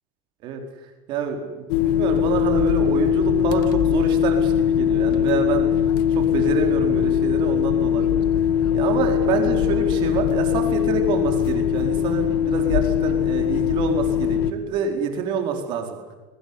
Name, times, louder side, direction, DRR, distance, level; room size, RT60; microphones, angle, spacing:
voice 1, 1.1-5.6 6.1-8.2 8.7-16.0, right 6 dB, 45° right, 4 dB, 4.5 m, -27 dB
sound 1, 1.7-14.5, left 9 dB, 75° left, 1.7 m, -21 dB
22.5 x 20.0 x 9.7 m, 1.2 s
cardioid pair, 160°, 12 cm